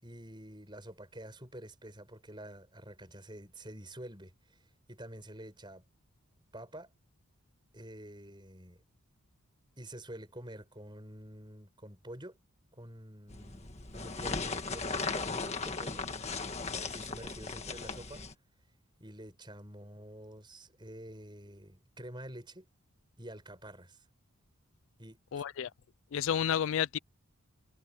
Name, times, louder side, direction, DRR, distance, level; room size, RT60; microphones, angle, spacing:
voice 1, 0.0-4.6 4.9-5.8 6.5-6.9 7.7-8.8 9.8-12.4 12.7-16.0 16.8-18.2 19.0-22.7 23.2-24.0 25.0-25.4, right 1 dB, 20° right, 6.9 m, -48 dB
sound 1, 13.3-18.3, left 4 dB, 30° left, 1.7 m, -37 dB
voice 2, 25.3-25.7 26.1-27.0, left 9 dB, 60° left, 0.3 m, -30 dB
head